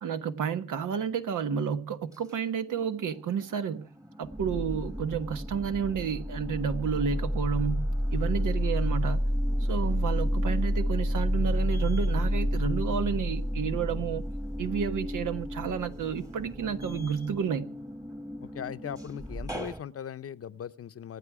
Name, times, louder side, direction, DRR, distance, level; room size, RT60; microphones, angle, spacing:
voice 1, 0.0-3.9 4.2-9.2 9.7-14.2 14.6-17.7, right 7 dB, 85° right, 1.4 m, -31 dB
sound 1, 2.8-3.5 3.9-19.8, equal, 10° right, 1.3 m, -30 dB
voice 2, 18.4-21.2, left 9 dB, 50° left, 0.7 m, -39 dB
25.5 x 9.0 x 4.9 m
wide cardioid pair, 130°, 30 cm